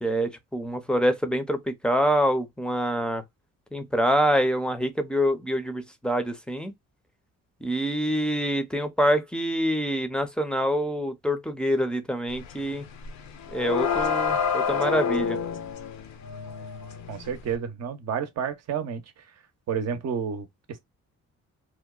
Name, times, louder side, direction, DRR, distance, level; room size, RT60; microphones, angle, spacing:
voice 1, 0.0-3.2 3.7-6.7 7.6-12.9 13.5-15.4, equal, 5° left, 0.5 m, -26 dB
sound 1, 12.4-12.6 12.9-17.5, left 6 dB, 70° left, 0.6 m, -28 dB
voice 2, 17.1-19.0 19.7-20.8, right 7 dB, 60° right, 0.7 m, -30 dB
2.8 x 2.1 x 2.2 m
cardioid pair, 90°, 30 cm